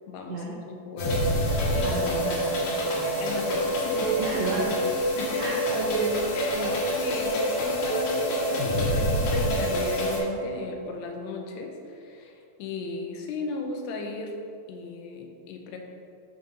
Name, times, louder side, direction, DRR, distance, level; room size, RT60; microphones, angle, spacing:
voice 1, 0.1-1.5 1.7-2.0 3.2-4.3 5.2-5.6 6.4-6.6 7.0-14.4 14.7-15.8, left 3 dB, 90° left, 2 dB, 2.8 m, -36 dB
sound 1, 1.0-10.2, equal, 65° left, 3.5 m, -26 dB
voice 2, 1.8-3.3 4.2-4.9 5.4-6.3 6.5-6.8, right 2 dB, 85° right, -3 dB, 2.0 m, -33 dB
8.0 x 3.8 x 5.4 m, 2.6 s
omnidirectional pair, 4.7 m